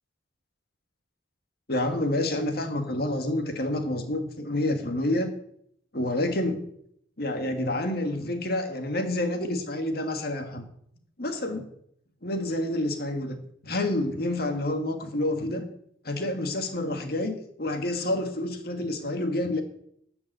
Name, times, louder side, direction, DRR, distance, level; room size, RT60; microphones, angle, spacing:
voice 1, 1.7-5.3 5.9-6.7 7.2-10.7 11.2-11.6 12.2-15.7 16.0-19.6, left 1 dB, 55° left, 6 dB, 2.0 m, -28 dB
12.5 x 7.2 x 8.0 m, 0.70 s
head